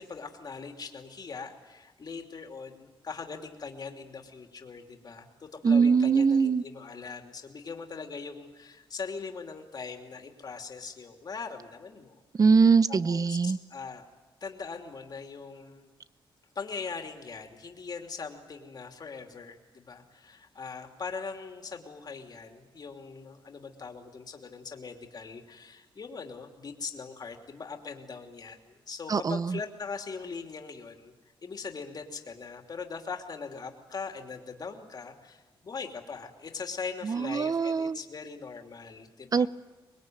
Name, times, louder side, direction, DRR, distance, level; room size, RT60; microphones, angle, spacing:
voice 1, 0.0-12.2 12.9-14.1 14.4-15.9 16.5-31.1 31.4-39.5, left 5 dB, 45° left, 3 dB, 3.0 m, -41 dB
voice 2, 5.6-6.6 12.4-13.6 29.1-29.6 37.0-38.0 39.3-39.5, right 5 dB, 40° right, 16 dB, 0.8 m, -22 dB
25.0 x 21.0 x 9.4 m, 1.2 s
cardioid pair, 100°, 9 cm